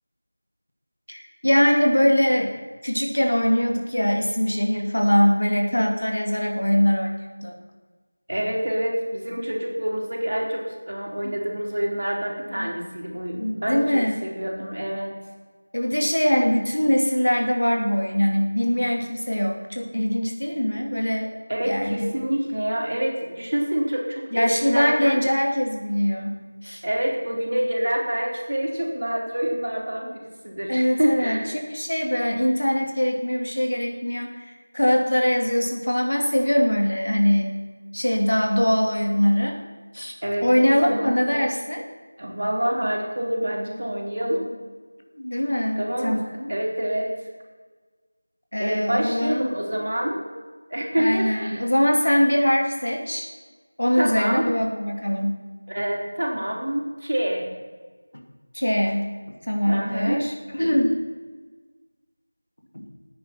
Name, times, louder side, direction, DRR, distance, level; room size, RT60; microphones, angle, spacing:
voice 1, 1.1-2.5 2.8-7.1 7.4-7.6 12.5-12.7 13.3-14.2 15.7-21.3 21.6-22.1 24.3-26.8 30.7-31.4 31.7-37.6 37.9-39.6 39.9-40.1 40.4-41.9 45.1-46.5 48.5-49.5 51.0-53.3 53.8-55.4 58.1-58.2 58.5-61.0 62.7-62.8, equal, 70° left, 2 dB, 2.7 m, -22 dB
voice 2, 8.3-13.8 14.2-15.1 21.5-25.2 26.8-31.5 40.2-41.5 42.2-44.5 45.8-46.2 46.5-47.1 48.6-50.3 50.7-51.6 54.0-54.5 55.7-57.5 59.7-60.2, right 1 dB, 60° right, 0 dB, 3.4 m, -27 dB
15.5 x 9.5 x 5.9 m, 1.4 s
figure-of-eight pair, 170°, 0 cm